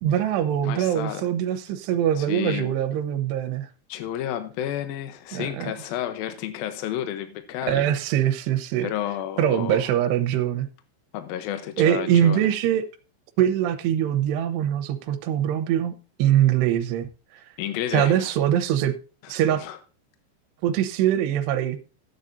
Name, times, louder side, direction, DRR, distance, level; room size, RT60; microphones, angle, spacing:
voice 1, 0.0-3.7 5.3-5.7 7.7-8.9 9.4-10.7 11.8-12.9 13.4-15.9 16.2-17.1 17.9-18.9 19.3-19.6 20.6-21.8, right 10 dB, 75° right, 2.8 m, -23 dB
voice 2, 0.6-1.3 2.2-2.7 3.9-7.9 8.8-9.9 11.1-12.5 17.6-18.3 19.6-19.8, left 11 dB, 80° left, 2.1 m, -31 dB
14.5 x 9.0 x 2.7 m
omnidirectional pair, 5.6 m